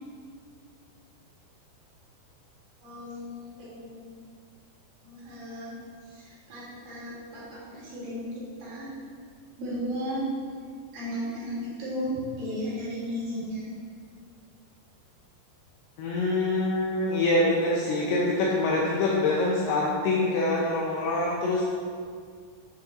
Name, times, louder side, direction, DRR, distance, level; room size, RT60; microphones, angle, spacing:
voice 1, 2.8-4.1 5.0-5.7 6.1-8.9 9.6-10.3 10.9-13.7, equal, 60° right, -9 dB, 3.4 m, -35 dB
voice 2, 16.0-21.6, left 2 dB, 80° left, -4 dB, 2.5 m, -25 dB
7.6 x 6.2 x 2.9 m, 2.1 s
omnidirectional pair, 5.1 m